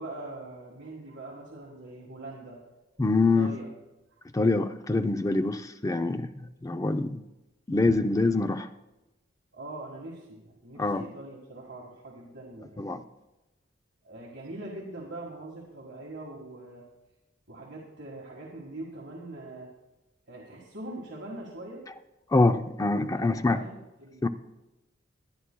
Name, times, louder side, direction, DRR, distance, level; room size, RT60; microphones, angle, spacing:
voice 1, 0.0-2.6 3.3-3.7 9.5-12.8 14.0-16.8 17.5-19.7 20.3-21.8 23.1-24.3, right 2 dB, 60° right, -3 dB, 1.7 m, -42 dB
voice 2, 3.0-3.6 4.3-7.2 7.7-8.7 10.8-11.0 12.8-13.0 22.3-23.7 24.2-24.3, left 3 dB, 15° left, 9 dB, 0.4 m, -25 dB
22.0 x 9.8 x 2.2 m, 0.99 s
head